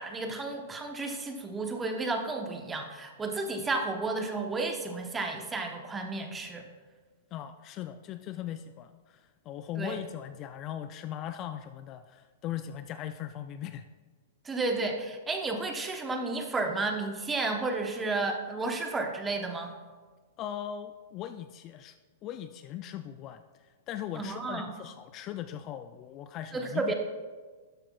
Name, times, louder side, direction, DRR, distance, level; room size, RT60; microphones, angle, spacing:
voice 1, 0.0-6.6 9.8-10.0 14.4-19.7 24.1-24.7 26.5-26.9, right 3 dB, 15° right, 4 dB, 0.9 m, -32 dB
voice 2, 7.3-13.9 20.4-22.0 22.2-26.9, left 10 dB, 35° left, 10 dB, 0.3 m, -39 dB
12.0 x 7.6 x 2.3 m, 1.4 s
hypercardioid pair, 130°, 0 cm